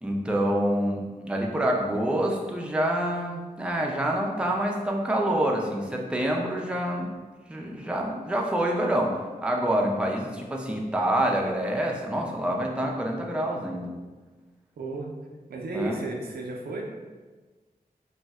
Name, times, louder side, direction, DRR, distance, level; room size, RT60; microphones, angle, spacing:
voice 1, 0.0-7.1 7.5-9.2 9.4-13.9 15.7-16.0, right 1 dB, 5° right, 0 dB, 0.4 m, -27 dB
voice 2, 14.8-15.1 15.5-16.8, right 2 dB, 90° right, 0 dB, 0.4 m, -33 dB
2.7 x 2.1 x 3.4 m, 1.3 s
wide cardioid pair, 75°, 16 cm